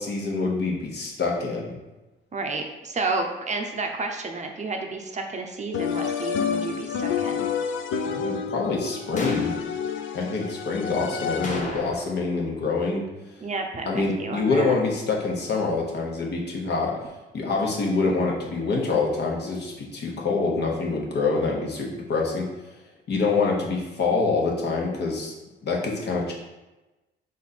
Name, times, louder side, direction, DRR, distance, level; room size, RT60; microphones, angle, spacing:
voice 1, 0.0-1.8 7.9-9.6 10.1-13.1 13.9-17.0 17.3-22.5 23.1-25.3 25.6-26.3, left 3 dB, 60° left, -2 dB, 1.1 m, -26 dB
voice 2, 2.3-7.4 13.4-14.7, right 3 dB, 35° right, 3 dB, 0.6 m, -31 dB
sound 1, 5.7-11.8, left 7 dB, 80° left, 0.4 m, -29 dB
sound 2, 9.2-9.6 11.4-12.3 12.6-12.7 17.7-17.8, left 2 dB, 40° left, 0.9 m, -35 dB
4.2 x 2.6 x 4.2 m, 1.1 s
cardioid pair, 90°, 20 cm